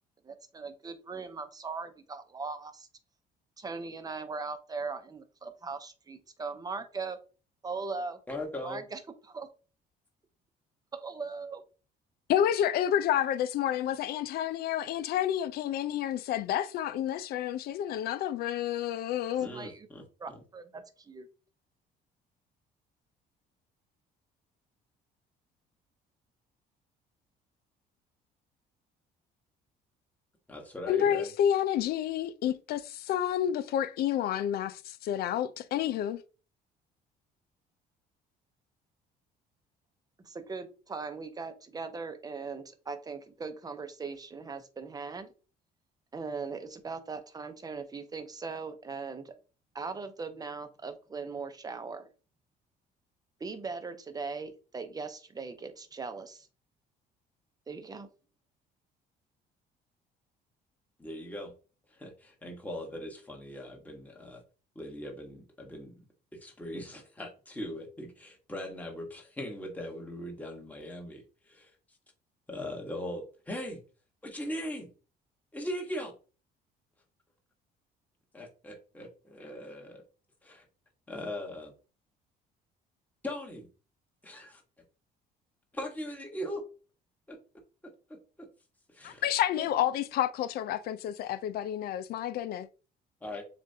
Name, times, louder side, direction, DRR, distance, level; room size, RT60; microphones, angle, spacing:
voice 1, 0.2-2.9 3.6-7.2 7.6-8.2 8.6-9.5 10.9-11.6 19.5-19.9 20.2-21.3 40.2-45.3 46.1-49.4 49.7-52.1 53.4-56.5 57.7-58.1, right 4 dB, 20° right, 0.8 m, -39 dB
voice 2, 8.3-8.8 19.4-20.4 30.5-31.3 61.0-61.5 61.9-64.4 64.7-66.0 66.3-71.7 72.5-73.8 74.2-74.9 75.5-76.1 78.3-80.0 80.4-80.6 81.1-81.7 83.2-83.7 84.2-84.6 85.7-86.6 87.3-87.4 88.1-88.5 88.9-89.2 89.6-89.8 93.2-93.4, left 1 dB, 10° left, 1.4 m, -40 dB
voice 3, 12.3-19.5 30.9-36.2 89.0-92.7, left 10 dB, 65° left, 0.5 m, -29 dB
7.2 x 2.5 x 2.7 m
cardioid pair, 110°, 17 cm